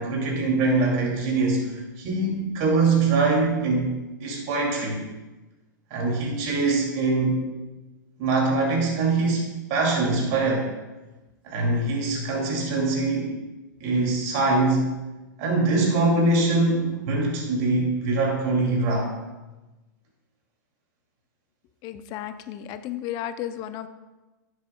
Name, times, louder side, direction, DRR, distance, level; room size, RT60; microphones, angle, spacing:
voice 1, 0.0-3.9 4.2-5.0 5.9-7.4 8.2-10.7 11.4-13.3 13.8-15.0 15.4-19.1, right 3 dB, 50° right, -1 dB, 2.4 m, -23 dB
voice 2, 21.8-23.9, left 11 dB, 40° left, 11 dB, 0.5 m, -33 dB
10.0 x 7.7 x 2.2 m, 1.1 s
hypercardioid pair, 115°, 10 cm